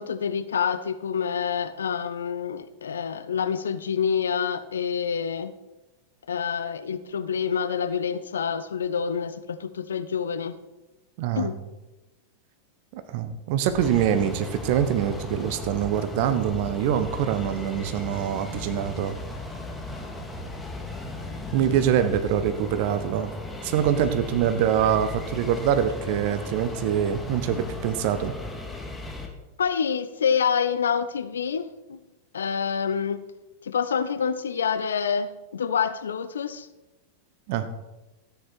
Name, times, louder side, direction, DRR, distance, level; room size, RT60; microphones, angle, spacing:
voice 1, 0.0-5.5 6.3-10.6 11.4-11.6 29.6-32.0 32.3-33.2 33.6-36.7, left 7 dB, 65° left, 13 dB, 0.6 m, -27 dB
voice 2, 11.2-11.5 12.9-19.2 21.5-23.3 23.6-28.3 37.5-37.7, right 9 dB, 50° right, 10 dB, 1.1 m, -24 dB
sound 1, 13.7-29.3, left 2 dB, 10° left, 2.0 m, -36 dB
13.5 x 9.5 x 4.4 m, 1.1 s
figure-of-eight pair, 90°, 0 cm